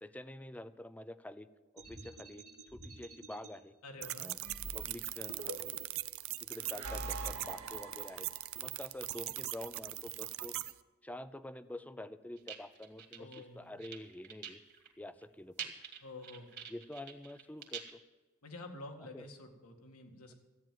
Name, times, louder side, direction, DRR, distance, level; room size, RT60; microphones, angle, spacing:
voice 1, 0.0-1.5 1.7-2.4 2.7-3.7 4.2-4.4 4.7-6.0 6.4-8.3 8.6-10.5 11.0-14.6 15.0-15.7 16.7-17.8 19.1-19.3, left 1 dB, 5° left, 14 dB, 0.5 m, -47 dB
sound 1, 1.8-3.5 4.4-5.9 6.6-8.7, right 2 dB, 80° right, 2.0 m, -46 dB
voice 2, 3.8-4.3 13.2-13.7 16.0-16.7 18.4-20.4, left 2 dB, 85° left, 3 dB, 2.1 m, -49 dB
sound 2, 4.0-10.7, right 16 dB, 65° right, 0.6 m, -41 dB
sound 3, 12.4-13.4 13.8-14.9 15.2-15.3 15.6-17.9, right 8 dB, 50° right, 2.0 m, -45 dB
13.5 x 9.1 x 7.6 m, 1.2 s
head